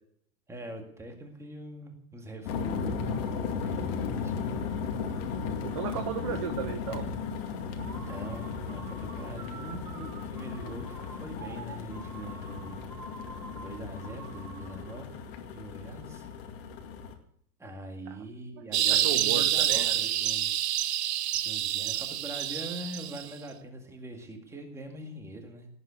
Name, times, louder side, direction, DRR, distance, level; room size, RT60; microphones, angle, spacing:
voice 1, 0.5-3.2 3.6-4.7 8.1-12.9 13.6-15.2 15.5-16.3 17.6-20.7 21.4-25.7, right 1 dB, 5° right, 3 dB, 2.0 m, -43 dB
sound 1, 2.5-17.1, left 5 dB, 35° left, 2.2 m, -36 dB
voice 2, 5.6-7.1 18.1-18.2 18.7-19.9, right 8 dB, 20° right, 8 dB, 0.5 m, -35 dB
sound 2, 7.8-15.0, right 5 dB, 80° right, 4.7 m, -48 dB
sound 3, 18.7-23.3, right 12 dB, 40° right, 1.0 m, -27 dB
18.5 x 7.7 x 9.5 m, 0.66 s
hypercardioid pair, 155°, 49 cm